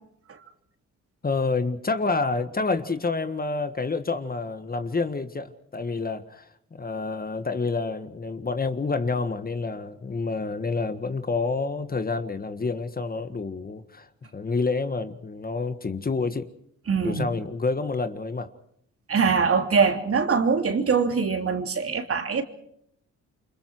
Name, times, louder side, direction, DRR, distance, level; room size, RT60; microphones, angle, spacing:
voice 1, 1.2-16.5 17.0-18.5, left 3 dB, 30° left, 1.6 m, -28 dB
voice 2, 16.9-17.3 19.1-22.4, right 5 dB, 45° right, 3.1 m, -23 dB
28.5 x 25.5 x 4.7 m
cardioid pair, 85°, 31 cm